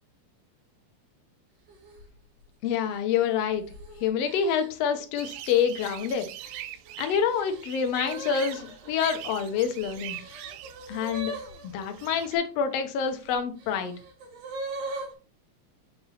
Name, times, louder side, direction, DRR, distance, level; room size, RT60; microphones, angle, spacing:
sound 1, 1.7-2.1 2.7-5.0 5.6-6.0 6.4-12.3 13.1-15.1, right 1 dB, 75° right, 3.3 m, -41 dB
voice 1, 2.6-3.6 4.0-6.3 7.0-10.2 10.9-11.3 11.6-14.0, left 7 dB, 65° left, 7 dB, 1.7 m, -27 dB
sound 2, 5.2-12.4, right 12 dB, 90° right, 1.5 m, -42 dB
5.8 x 5.4 x 4.2 m, 0.36 s
omnidirectional pair, 3.6 m